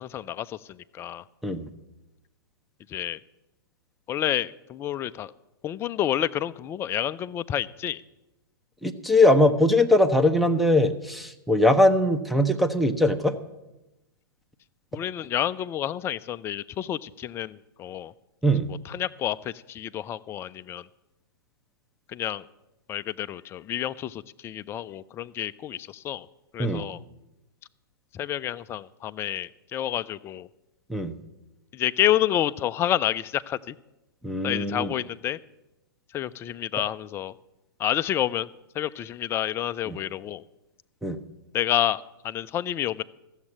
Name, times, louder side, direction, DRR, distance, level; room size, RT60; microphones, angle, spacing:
voice 1, 0.0-1.2 2.9-3.2 4.1-5.3 5.6-8.0 14.9-18.1 18.9-20.9 22.1-22.4 22.9-26.3 26.5-27.0 28.1-30.5 31.7-33.8 34.4-35.4 36.1-37.3 37.8-38.5 38.7-40.4 41.5-43.0, left 11 dB, 20° left, 14 dB, 0.4 m, -29 dB
voice 2, 8.8-13.3 18.4-18.7 26.6-26.8 30.9-31.1 34.2-34.9 39.9-40.0 41.0-41.2, left 1 dB, ahead, 7 dB, 0.8 m, -21 dB
14.5 x 7.3 x 8.8 m, 0.97 s
figure-of-eight pair, 110°, 12 cm